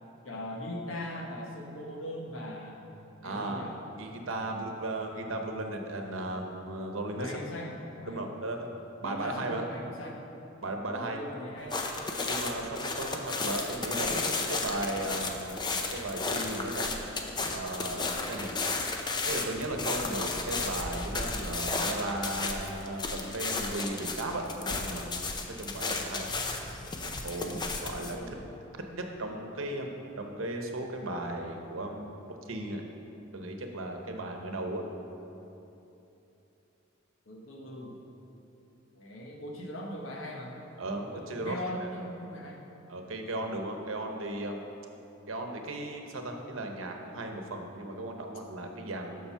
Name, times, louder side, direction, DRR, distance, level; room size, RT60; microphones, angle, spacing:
voice 1, 0.2-2.8 3.2-3.8 4.5-4.7 7.2-8.2 9.0-10.2 10.9-11.9 27.9-28.4 37.3-38.0 38.9-40.6 40.9-42.7, left 1 dB, 80° left, 0 dB, 1.2 m, -40 dB
voice 2, 3.2-3.7 4.0-7.4 8.1-8.7 9.0-9.7 10.6-11.2 12.3-16.9 17.4-18.5 19.2-25.0 25.4-26.3 27.2-28.2 28.9-32.8 33.3-34.8 40.8-41.6 41.8-41.9 42.9-44.6 45.3-49.3, right 1 dB, 90° right, 3 dB, 0.9 m, -36 dB
sound 1, 11.7-28.1, left 3 dB, 20° left, 0.5 m, -33 dB
7.1 x 6.3 x 5.7 m, 3.0 s
head